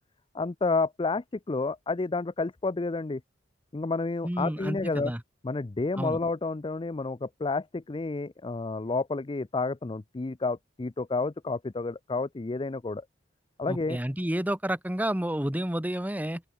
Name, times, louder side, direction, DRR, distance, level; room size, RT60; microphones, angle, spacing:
voice 1, 0.3-3.2 3.7-5.1 5.4-13.0 13.6-14.0, left 3 dB, 25° left, 0.5 m, -30 dB
voice 2, 4.2-5.2 6.0-6.2 13.7-16.4, right 1 dB, 10° right, 1.3 m, -30 dB
open air
head